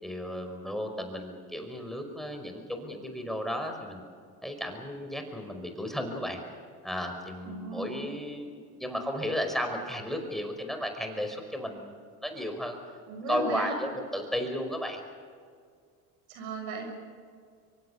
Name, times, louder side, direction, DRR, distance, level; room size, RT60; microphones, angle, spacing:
voice 1, 0.0-4.0 4.4-6.4 6.8-12.8 13.3-15.0, equal, ahead, 5 dB, 5.3 m, -34 dB
voice 2, 7.4-8.1 13.1-13.7 16.3-16.8, right 2 dB, 85° right, 3 dB, 6.8 m, -35 dB
25.0 x 23.5 x 6.9 m, 2.1 s
supercardioid pair, 75°, 42 cm